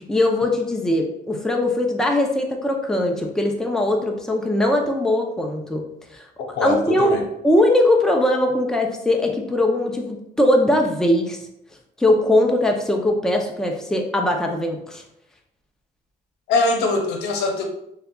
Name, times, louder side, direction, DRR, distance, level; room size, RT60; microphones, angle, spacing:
voice 1, 0.0-5.8 6.1-6.3 6.6-7.2 7.4-11.4 12.0-15.0, left 1 dB, 5° left, 1 dB, 0.6 m, -20 dB
voice 2, 6.4-7.2 16.5-17.6, left 3 dB, 80° left, 2 dB, 0.8 m, -22 dB
6.3 x 2.3 x 2.3 m, 0.77 s
cardioid pair, 110°, 17 cm